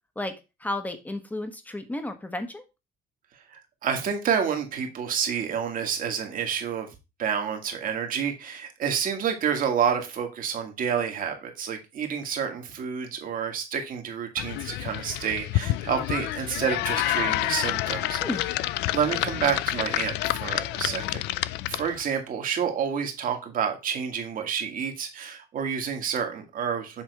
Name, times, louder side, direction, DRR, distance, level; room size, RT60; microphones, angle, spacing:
voice 1, 0.6-2.6 18.2-18.4, left 1 dB, 10° left, 8 dB, 1.3 m, -32 dB
voice 2, 3.5-6.9 7.2-18.2 18.9-21.2 21.7-27.0, right 7 dB, 55° right, 4 dB, 1.8 m, -29 dB
sound 1, 14.4-22.1, left 16 dB, 90° left, 0.4 m, -28 dB
7.5 x 3.6 x 4.6 m, 0.26 s
cardioid pair, 110°, 17 cm